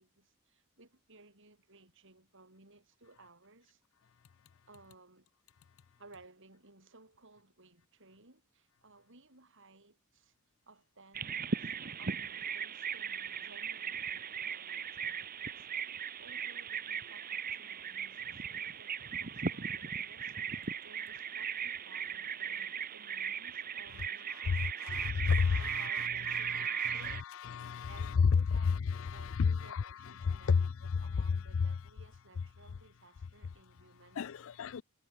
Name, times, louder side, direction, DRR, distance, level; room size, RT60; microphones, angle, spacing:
voice 1, 0.0-3.8 4.7-5.3 6.0-10.3 10.7-27.6 27.9-28.7 29.1-34.4, right 3 dB, 60° right, 7.2 m, -60 dB
Bird vocalization bird call bird song, 11.1-27.2, right 7 dB, 45° right, 1.1 m, -38 dB
voice 2, 24.5-25.9 26.3-28.3 28.6-31.2 31.5-31.7 34.2-34.8, left 5 dB, 65° left, 0.4 m, -32 dB
head